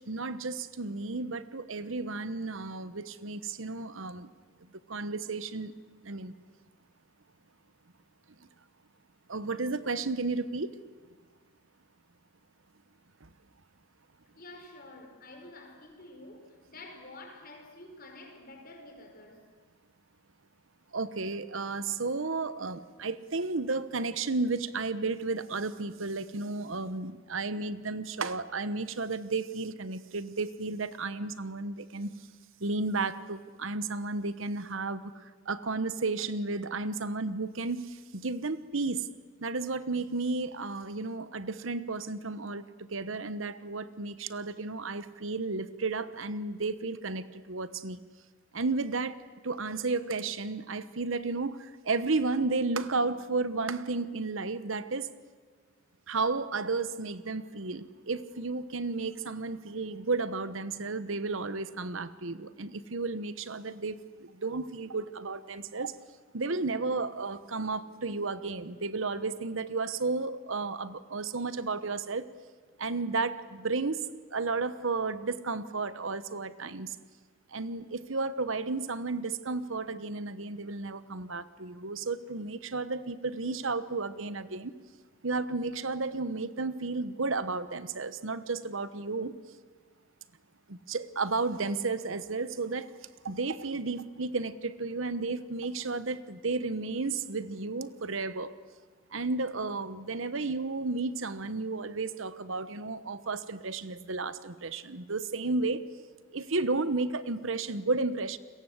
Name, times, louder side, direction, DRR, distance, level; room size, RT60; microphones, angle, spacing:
voice 1, 0.0-4.3 4.9-5.7 6.0-6.3 9.3-10.7 13.2-13.3 20.9-32.1 32.6-39.1 39.4-48.0 48.5-49.2 49.4-55.1 56.1-65.9 66.3-72.3 72.8-74.0 74.3-77.0 77.5-84.7 85.2-89.3 90.7-92.9 93.2-98.5 99.1-105.8 106.3-108.4, right 3 dB, 70° right, 14 dB, 1.1 m, -33 dB
voice 2, 14.4-19.5, left 2 dB, 45° left, 3 dB, 5.2 m, -49 dB
30.0 x 22.5 x 8.1 m, 1.5 s
head